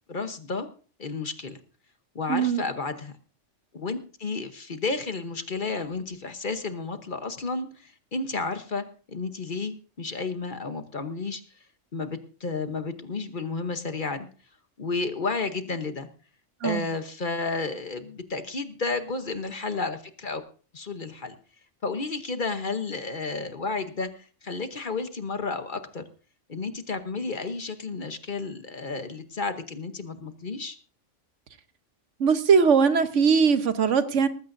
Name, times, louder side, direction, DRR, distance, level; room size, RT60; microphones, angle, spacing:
voice 1, 0.1-0.7 1.0-1.6 2.1-3.1 3.7-11.4 11.9-14.3 14.8-16.1 16.6-20.4 20.7-21.3 21.8-24.1 24.4-26.0 26.5-30.8, left 4 dB, 45° left, 1.1 m, -32 dB
voice 2, 2.3-2.7 16.6-16.9 32.2-34.3, right 6 dB, 70° right, 1.3 m, -20 dB
19.0 x 15.0 x 2.6 m
omnidirectional pair, 1.3 m